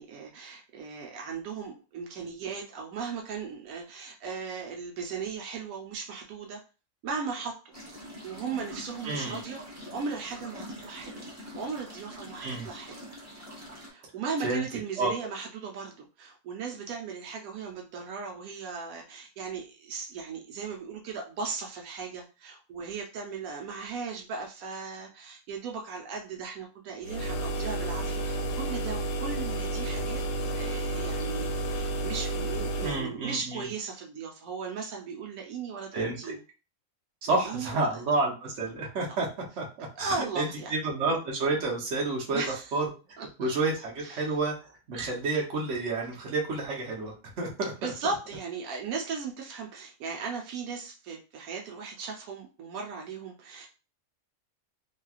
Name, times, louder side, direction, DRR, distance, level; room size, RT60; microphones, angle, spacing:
voice 1, 0.0-6.6 7.0-7.6 8.2-13.0 13.9-30.2 30.6-36.4 37.3-38.0 40.0-40.7 42.3-42.8 43.2-43.5 44.0-44.4 47.8-53.7, right 5 dB, 85° right, 1 dB, 1.1 m, -37 dB
sound 1, 7.7-13.9, equal, 15° right, 0.7 m, -44 dB
voice 2, 9.0-9.4 12.4-12.7 14.4-14.6 15.0-15.1 32.8-33.7 35.9-36.2 37.2-39.3 39.6-42.4 42.7-42.8 43.4-44.5 44.9-47.9, right 3 dB, 60° right, -2 dB, 1.1 m, -30 dB
sound 2, 27.0-33.1, right 2 dB, 70° left, 0.9 m, -31 dB
3.1 x 2.7 x 2.3 m, 0.32 s
omnidirectional pair, 1.5 m